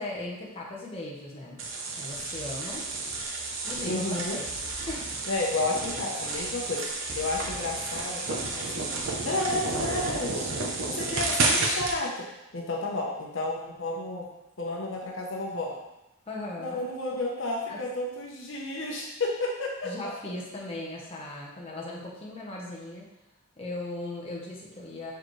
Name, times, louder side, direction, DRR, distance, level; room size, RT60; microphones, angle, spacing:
voice 1, 0.0-1.6 1.9-2.9 3.6-4.0 4.3-4.5 4.9-5.1 16.3-16.8 17.7-17.8 19.8-23.1 23.6-25.1, left 2 dB, 30° left, -4 dB, 1.1 m, -38 dB
sound 1, 1.6-12.0, right 3 dB, 75° right, 0.9 m, -31 dB
voice 2, 3.9-4.4 5.3-8.8 9.2-10.5 10.9-12.3 12.5-14.3 14.6-15.8 16.6-19.9, left 2 dB, 65° left, -1 dB, 1.0 m, -31 dB
6.2 x 4.9 x 3.3 m, 0.91 s
head